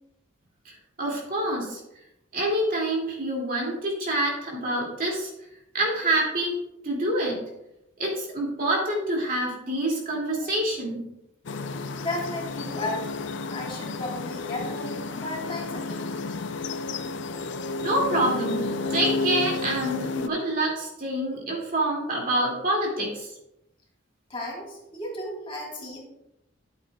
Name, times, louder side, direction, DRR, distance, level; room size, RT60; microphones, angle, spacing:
voice 1, 0.6-1.8 2.3-5.3 5.7-6.6 6.8-7.4 8.0-11.0 17.8-18.6 18.9-23.3, right 1 dB, 45° right, -2 dB, 2.4 m, -26 dB
sound 1, 11.5-20.3, left 3 dB, 65° left, 0.5 m, -31 dB
voice 2, 11.9-13.1 13.5-16.1 24.3-26.0, left 1 dB, 30° left, -2 dB, 2.7 m, -34 dB
12.5 x 8.1 x 2.3 m, 0.86 s
head